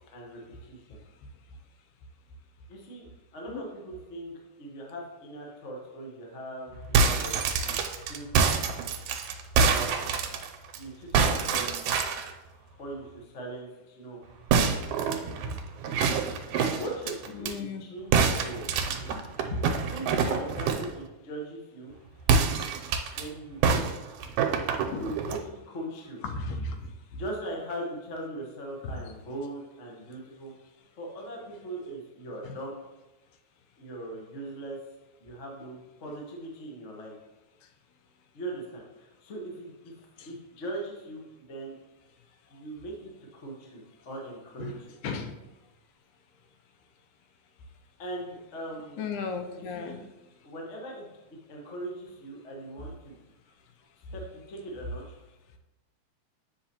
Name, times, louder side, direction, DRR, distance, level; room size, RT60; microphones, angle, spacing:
voice 1, 0.1-1.0 2.7-8.3 9.5-10.1 10.7-11.8 12.8-14.2 16.7-18.7 19.9-21.9 23.2-24.0 24.9-26.2 27.1-30.5 31.0-32.8 33.8-34.8 35.2-37.1 38.3-39.9 40.2-41.8 42.5-44.9 48.0-49.0 49.6-50.0 50.4-51.1 51.5-53.2 54.1-55.0, right 1 dB, 60° left, -1 dB, 0.7 m, -40 dB
sound 1, 6.8-10.8 11.1-12.3 14.5-17.5 18.1-20.9 22.2-23.2 23.6-25.4, right 5 dB, 80° right, 1.9 m, -26 dB
voice 2, 17.3-17.9 19.5-19.6 24.9-25.1 26.2-26.8 28.8-28.9 32.4-32.5 44.6-44.7 45.0-45.3 49.0-50.0, left 4 dB, 85° left, 6 dB, 2.1 m, -34 dB
8.1 x 5.9 x 2.9 m, 1.0 s
omnidirectional pair, 3.5 m